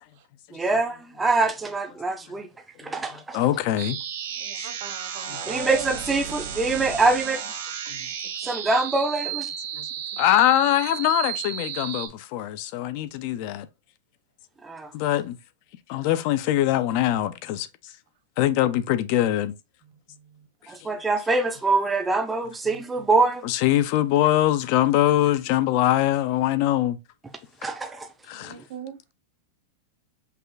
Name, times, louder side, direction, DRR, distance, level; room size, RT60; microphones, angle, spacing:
voice 1, 0.5-2.5 2.8-3.4 5.4-7.4 8.4-9.5 14.6-14.9 20.7-23.5 27.6-28.1, right 3 dB, 10° right, 0.5 m, -24 dB
voice 2, 2.8-4.0 5.3-5.6 7.9-8.1 9.7-13.7 14.9-15.4 15.9-17.9 18.4-19.5 20.8-20.9 23.4-27.0 28.3-28.6, left 13 dB, 45° left, 0.4 m, -23 dB
sound 1, 3.8-12.1, right 9 dB, 75° right, 1.6 m, -33 dB
voice 3, 4.4-6.0 6.3-6.4 28.3-29.0, right 8 dB, 55° right, 1.0 m, -38 dB
5.4 x 2.3 x 3.9 m
supercardioid pair, 155°, 0 cm